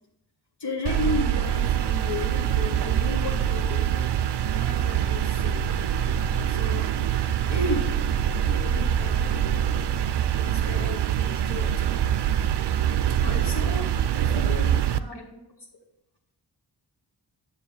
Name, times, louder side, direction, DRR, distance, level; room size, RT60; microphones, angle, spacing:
voice 1, 0.6-4.1 4.5-5.8 6.5-6.9 7.4-8.0 8.5-9.9 10.3-12.1 13.2-15.4, left 2 dB, 65° left, 0 dB, 1.3 m, -34 dB
sound 1, 0.9-15.0, right 9 dB, 70° right, 0.5 m, -24 dB
10.0 x 6.9 x 3.4 m, 0.89 s
wide cardioid pair, 90°, 43 cm